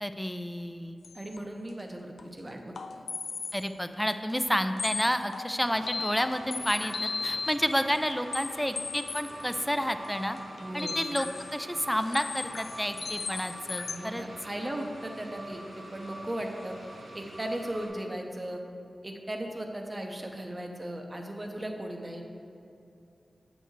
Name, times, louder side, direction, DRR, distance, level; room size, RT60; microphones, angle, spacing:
voice 1, 0.0-1.0 3.5-6.9 7.2-10.4 10.7-14.2, equal, 5° left, 9 dB, 0.4 m, -30 dB
sound 1, 1.0-1.4 1.7-1.8 2.2-2.3 2.8-3.7 3.9-4.0 4.5-4.6 4.8-11.6 12.0-14.0, left 4 dB, 85° left, 0.4 m, -37 dB
voice 2, 1.1-3.0 10.6-11.0 13.9-16.8 17.1-18.6 19.0-22.2, right 1 dB, 25° right, 3 dB, 0.8 m, -37 dB
sound 2, 5.6-17.9, right 1 dB, 70° right, 1.8 m, -46 dB
7.9 x 7.6 x 3.2 m, 2.6 s
wide cardioid pair, 95°, 0 cm